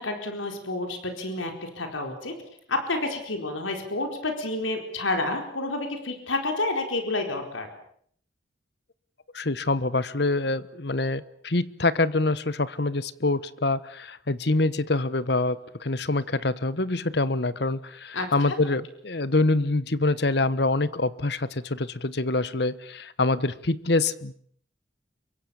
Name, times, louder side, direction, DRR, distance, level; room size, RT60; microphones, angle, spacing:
voice 1, 0.0-2.3 2.7-7.7 18.1-18.6, left 2 dB, 90° left, 4 dB, 4.4 m, -29 dB
voice 2, 9.3-24.3, left 2 dB, 60° left, 16 dB, 1.1 m, -25 dB
27.0 x 23.5 x 7.1 m, 0.62 s
head